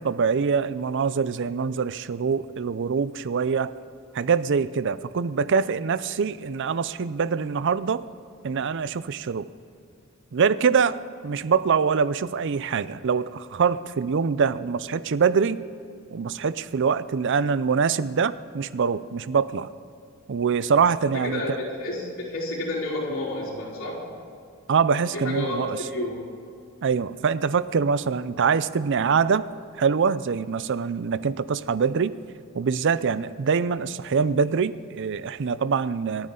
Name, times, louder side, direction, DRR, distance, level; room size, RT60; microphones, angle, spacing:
voice 1, 0.0-3.7 4.1-8.0 8.4-9.5 10.3-11.0 11.2-15.6 16.1-19.7 20.3-21.6 24.7-25.8 26.8-29.5 29.8-32.2 32.5-36.3, right 6 dB, 60° right, 16 dB, 0.5 m, -24 dB
voice 2, 21.1-24.0 25.1-26.2, left 1 dB, 70° left, -4 dB, 3.8 m, -30 dB
28.0 x 9.5 x 3.8 m, 2.4 s
head